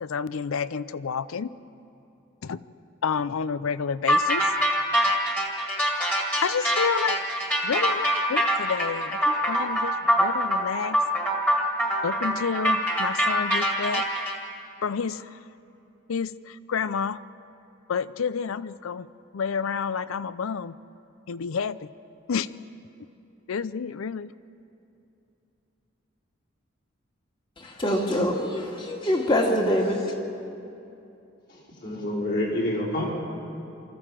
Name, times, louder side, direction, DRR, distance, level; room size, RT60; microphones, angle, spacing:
voice 1, 0.0-1.5 2.4-2.6 3.0-4.5 6.4-7.3 7.6-11.0 12.0-14.0 14.8-15.4 16.1-17.2 17.9-19.1 19.3-20.7 21.3-21.9 22.3-22.7 23.5-24.3, left 6 dB, 85° left, 17 dB, 0.5 m, -29 dB
sound 1, 4.1-14.4, equal, 10° left, 2.0 m, -24 dB
voice 2, 27.6-30.1, equal, 25° left, 0 dB, 2.1 m, -24 dB
voice 3, 31.5-33.1, left 1 dB, 50° left, -6 dB, 5.0 m, -28 dB
24.0 x 14.5 x 7.5 m, 2.8 s
head